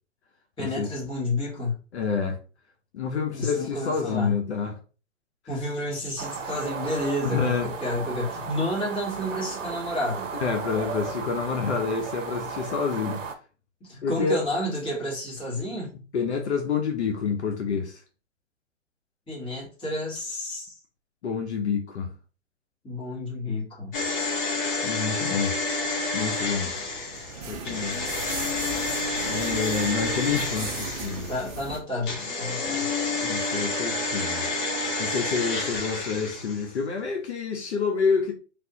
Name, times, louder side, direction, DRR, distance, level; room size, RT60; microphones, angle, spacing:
voice 1, 0.6-1.8 3.3-4.3 5.5-10.3 13.8-15.9 19.3-20.8 22.8-23.9 31.3-32.9, left 1 dB, 15° left, 1.3 m, -30 dB
voice 2, 1.9-2.4 2.9-4.8 7.2-7.7 10.3-13.2 14.0-14.4 16.1-18.0 21.2-22.1 24.8-25.6 26.1-26.7 27.5-28.1 29.2-31.3 33.2-34.5 35.0-38.3, left 5 dB, 60° left, 0.8 m, -28 dB
sound 1, 6.2-13.4, right 5 dB, 75° right, 0.7 m, -35 dB
sound 2, 23.9-31.5 32.0-36.7 37.0-37.1, left 2 dB, 30° left, 1.0 m, -29 dB
sound 3, 25.9-31.8, right 4 dB, 30° right, 0.6 m, -38 dB
3.3 x 2.5 x 2.8 m
hypercardioid pair, 130°, 38 cm